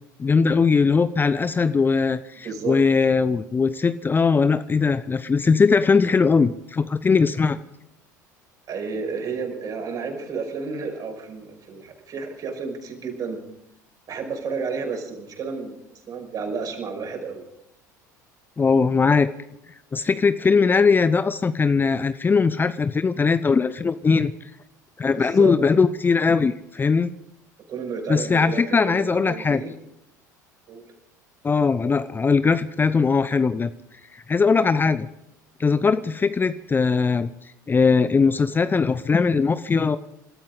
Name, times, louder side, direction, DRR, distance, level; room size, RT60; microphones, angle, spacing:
voice 1, 0.2-7.6 18.6-19.3 19.9-24.3 25.0-27.1 28.1-29.6 31.4-33.7 34.1-35.1 35.6-37.3 37.7-40.0, left 5 dB, 20° left, 13 dB, 0.7 m, -20 dB
voice 2, 2.4-2.8 8.7-13.4 14.1-17.5 25.1-25.5 27.7-29.7 30.7-30.8, right 5 dB, 40° right, 2 dB, 5.5 m, -31 dB
27.0 x 13.5 x 3.9 m, 0.83 s
figure-of-eight pair, 70°, 10 cm